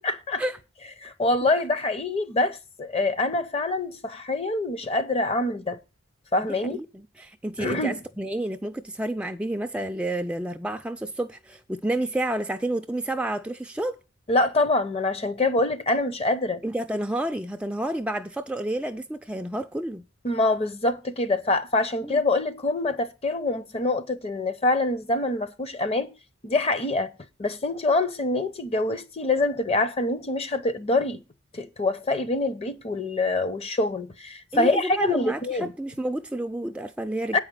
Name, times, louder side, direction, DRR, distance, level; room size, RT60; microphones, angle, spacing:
voice 1, 0.0-0.4 1.0-5.8 6.3-6.8 7.6-8.0 14.3-16.6 20.2-26.1 26.4-27.1 27.4-31.2 31.5-35.7 37.3-37.4, left 2 dB, 30° left, 0.7 m, -25 dB
voice 2, 6.5-14.0 16.6-20.0 22.0-22.2 34.5-37.4, right 1 dB, 5° right, 0.4 m, -30 dB
8.6 x 4.9 x 7.5 m
head